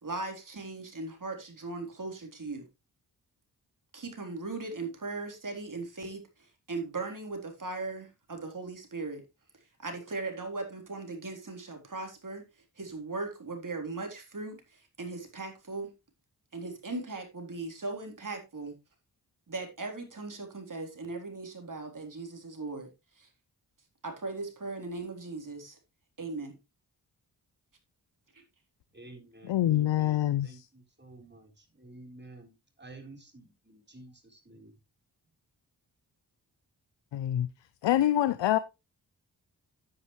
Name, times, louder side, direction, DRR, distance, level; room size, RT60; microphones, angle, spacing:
voice 1, 0.0-2.7 3.9-9.2 9.8-12.5 12.8-15.9 16.5-18.8 19.5-22.9 23.2-23.3 24.0-25.8 26.2-26.6 28.3-28.4, right 3 dB, 45° right, 3.7 m, -38 dB
voice 2, 28.9-34.7, right 2 dB, 25° right, 4.0 m, -51 dB
voice 3, 29.5-30.7 37.1-37.5 37.8-38.6, left 12 dB, 85° left, 0.6 m, -25 dB
9.5 x 9.0 x 3.2 m
cardioid pair, 45°, 42 cm